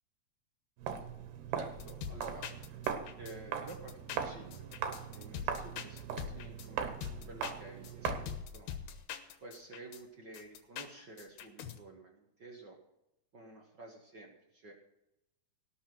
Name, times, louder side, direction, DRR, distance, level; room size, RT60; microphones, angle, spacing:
Walk footsteps, 0.8-8.4, right 8 dB, 90° right, 3.3 m, -40 dB
voice 1, 1.5-2.5 3.2-4.7 5.1-7.0 7.3-8.8 9.4-12.8 13.3-14.7, right 2 dB, 55° right, 1 dB, 1.2 m, -51 dB
sound 1, 1.8-3.3 3.7-6.7 7.0-10.0 10.3-11.8, left 9 dB, 85° left, 3.1 m, -43 dB
18.0 x 6.8 x 6.1 m, 0.87 s
omnidirectional pair, 4.4 m